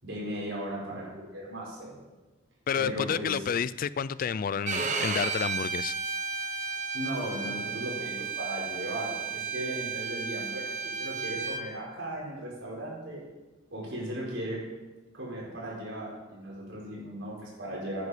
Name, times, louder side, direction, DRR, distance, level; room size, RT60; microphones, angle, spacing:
voice 1, 0.0-1.9 2.7-3.5 6.9-13.2 13.7-14.6 15.1-18.1, right 1 dB, 70° right, -4 dB, 4.6 m, -37 dB
voice 2, 2.7-6.0, left 7 dB, 45° left, 18 dB, 0.3 m, -30 dB
Bowed string instrument, 4.7-11.6, right 5 dB, 40° right, 0.9 m, -33 dB
10.5 x 9.9 x 5.0 m, 1.2 s
head